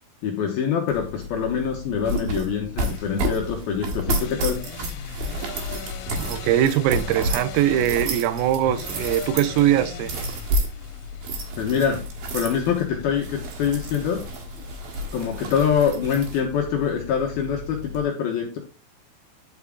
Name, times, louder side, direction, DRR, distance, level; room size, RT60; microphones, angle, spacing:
voice 1, 0.2-4.6 11.6-12.0 12.3-14.2 15.1-18.6, left 7 dB, 70° left, 2.3 m, -24 dB
sound 1, 0.9-18.0, equal, 60° right, 2.8 m, -31 dB
sound 2, 2.8-15.8, left 10 dB, 90° left, 3.6 m, -41 dB
voice 2, 6.1-10.1, right 12 dB, 90° right, 3.4 m, -21 dB
11.0 x 5.6 x 3.6 m
omnidirectional pair, 5.9 m